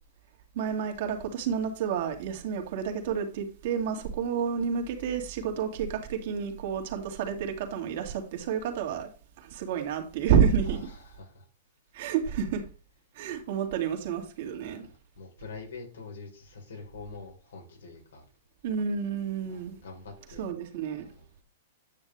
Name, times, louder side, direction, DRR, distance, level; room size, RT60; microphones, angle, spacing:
voice 1, 0.5-9.1 9.4-10.8 11.9-12.6 13.2-14.9 18.6-19.8 20.4-21.1, right 7 dB, 55° right, 2.2 m, -29 dB
voice 2, 10.6-11.4 14.6-14.8 15.2-18.2 19.5-20.5 21.0-21.3, left 4 dB, 85° left, 4.0 m, -45 dB
9.6 x 6.4 x 3.3 m
hypercardioid pair, 145°, 0 cm